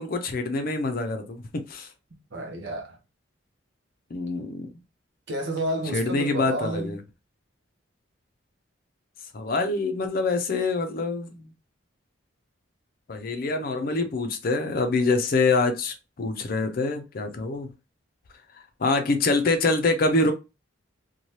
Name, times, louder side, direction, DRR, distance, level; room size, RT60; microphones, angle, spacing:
voice 1, 0.0-1.9 4.1-4.7 5.9-7.0 9.3-11.5 13.1-17.7 18.8-20.3, left 3 dB, 50° left, 0.5 m, -25 dB
voice 2, 2.3-3.0 5.3-7.0, right 1 dB, 60° right, 0.7 m, -30 dB
2.7 x 2.2 x 3.0 m
head